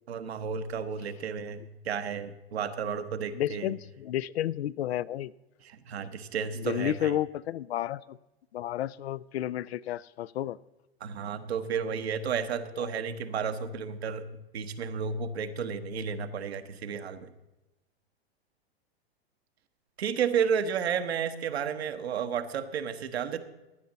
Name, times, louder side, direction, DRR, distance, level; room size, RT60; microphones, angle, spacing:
voice 1, 0.1-3.7 5.6-7.2 11.0-14.3 14.5-17.3 20.0-23.4, right 7 dB, 75° right, 9 dB, 1.1 m, -32 dB
voice 2, 3.3-5.3 6.5-8.2 8.5-10.6 12.8-12.9, left 12 dB, 75° left, 19 dB, 0.5 m, -32 dB
16.0 x 10.0 x 4.0 m, 1.0 s
hypercardioid pair, 105°, 32 cm